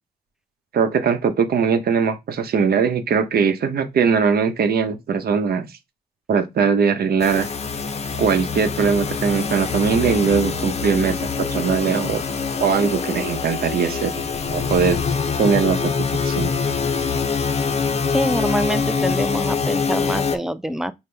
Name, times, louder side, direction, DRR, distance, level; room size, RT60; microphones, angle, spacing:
voice 1, 0.7-5.7 6.3-7.5 8.1-12.2 12.6-14.1 14.5-15.0 15.4-15.9 16.2-16.5, right 6 dB, 70° right, 0.8 m, -20 dB
sound 1, 7.2-20.4, left 5 dB, 40° left, 0.6 m, -24 dB
voice 2, 18.1-20.9, equal, 5° right, 0.5 m, -25 dB
5.2 x 2.2 x 3.4 m
cardioid pair, 65°, 16 cm